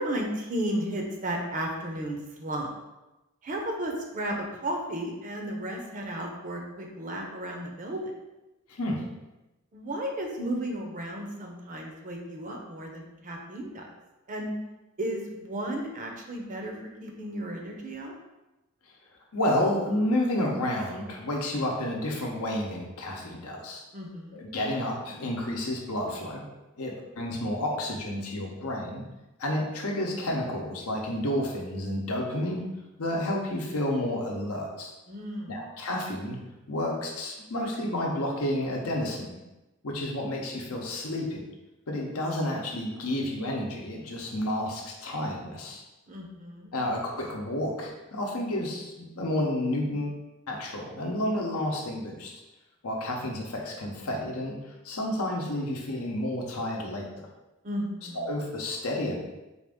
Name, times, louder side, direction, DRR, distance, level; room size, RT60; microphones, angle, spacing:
voice 1, 0.0-2.7 3.4-8.0 9.7-13.9 14.3-14.5 15.0-16.7 17.0-18.1 23.9-24.4 35.1-35.6 46.1-46.7 57.6-58.3, right 1 dB, 35° right, 1 dB, 0.6 m, -34 dB
voice 2, 8.7-9.0 19.3-23.8 24.3-26.4 26.8-29.0 29.4-32.6 33.0-34.9 35.5-36.4 36.7-39.3 39.8-41.4 41.9-45.8 46.7-50.2 50.5-52.3 52.8-54.6 54.8-57.3 58.1-59.2, left 1 dB, 75° left, 0 dB, 0.8 m, -30 dB
4.3 x 2.5 x 3.5 m, 1.0 s
head